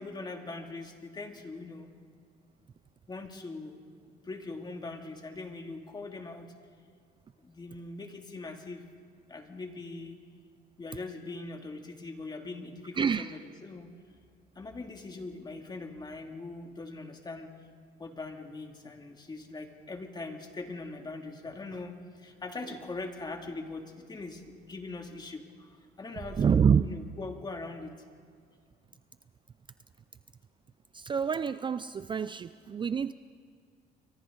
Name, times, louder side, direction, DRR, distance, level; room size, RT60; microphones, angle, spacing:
voice 1, 0.0-1.9 3.1-3.8 4.1-6.5 7.4-8.8 9.3-10.2 10.8-13.9 14.6-17.5 18.0-27.9, left 3 dB, 25° left, 3 dB, 2.6 m, -41 dB
voice 2, 13.0-13.3 26.4-26.9 30.9-33.1, right 7 dB, 30° right, 14 dB, 0.5 m, -27 dB
30.0 x 24.0 x 3.9 m, 2.1 s
cardioid pair, 110°, 17 cm